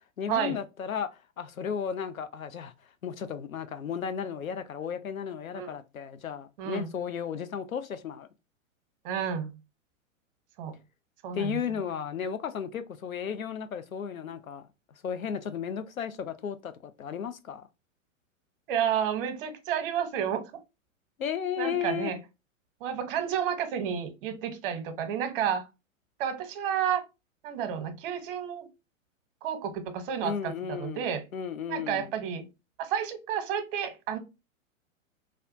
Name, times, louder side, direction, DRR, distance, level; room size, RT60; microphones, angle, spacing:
voice 1, 0.2-1.1 1.4-2.7 3.0-8.3 11.3-14.6 15.0-17.6 21.2-22.1 30.2-32.1, left 7 dB, 85° left, 0.5 m, -34 dB
voice 2, 6.6-6.9 9.0-9.5 10.6-10.7 11.2-11.6 18.7-20.4 21.6-22.2 22.8-25.7 26.2-27.0 27.4-28.7 29.4-31.2 31.7-32.5 32.8-34.2, right 8 dB, 40° right, 0.8 m, -31 dB
3.4 x 2.3 x 2.5 m
figure-of-eight pair, 105°, 41 cm